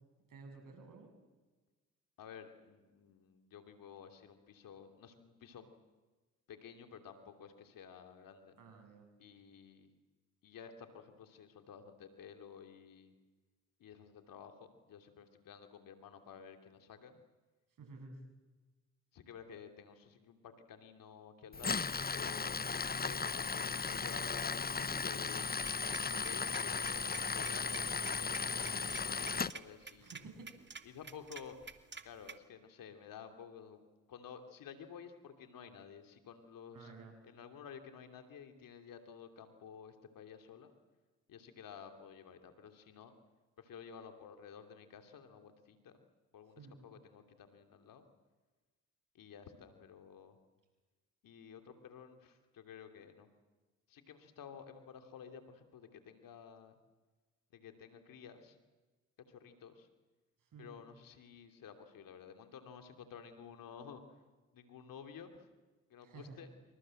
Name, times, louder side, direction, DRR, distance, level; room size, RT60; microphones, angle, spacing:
voice 1, 0.3-1.1 8.6-9.1 17.8-18.2 30.0-30.6 36.7-37.1 46.6-46.8 60.4-60.7 66.0-66.5, right 4 dB, 75° right, 5 dB, 7.6 m, -53 dB
voice 2, 2.2-5.7 6.5-8.6 9.2-9.9 10.4-13.1 13.8-17.2 19.1-21.8 22.1-25.5 26.1-30.2 30.8-31.6 32.0-33.8 34.1-36.9 37.2-40.7 41.3-43.1 43.6-46.0 46.3-48.1 49.1-50.4 51.2-53.3 53.9-56.8 57.5-58.6 59.3-59.9 60.6-64.2 64.5-65.5 65.9-66.5, left 7 dB, 80° left, 6 dB, 3.0 m, -53 dB
Tools, 21.5-29.5, left 5 dB, 30° left, 0.9 m, -36 dB
sound 1, 25.6-32.4, right 5 dB, 35° right, 2.2 m, -50 dB
27.0 x 25.0 x 7.8 m, 1.2 s
supercardioid pair, 55°, 33 cm